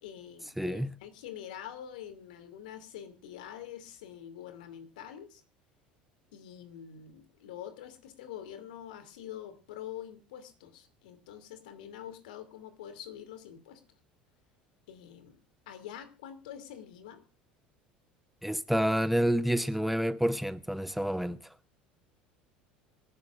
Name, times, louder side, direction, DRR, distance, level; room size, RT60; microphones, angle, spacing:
voice 1, 0.0-5.4 6.3-13.8 14.9-17.2, left 10 dB, 65° left, 2.7 m, -45 dB
voice 2, 0.6-0.9 18.4-21.5, equal, ahead, 0.8 m, -29 dB
26.0 x 12.0 x 2.5 m
figure-of-eight pair, 70°, 5 cm